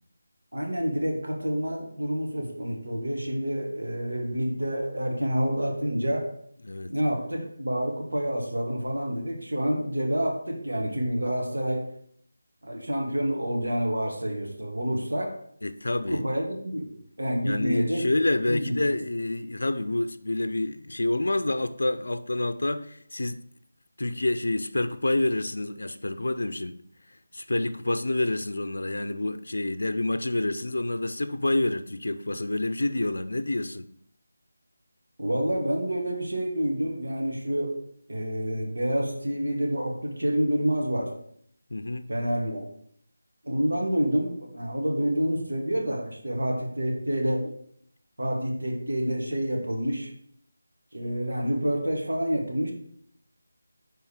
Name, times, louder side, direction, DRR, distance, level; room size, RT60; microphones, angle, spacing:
voice 1, 0.5-6.3 6.9-11.9 12.6-15.3 16.1-18.0 18.5-19.0 35.2-37.8 38.1-41.1 42.1-42.6 43.4-47.5 48.2-50.1 50.9-52.7, equal, 80° right, 1.8 m, -28 dB
voice 2, 15.6-16.2 17.4-23.4 24.0-26.7 27.1-33.9 41.7-42.1, left 2 dB, 75° left, 0.5 m, -28 dB
5.4 x 4.3 x 4.8 m
figure-of-eight pair, 165°, 0 cm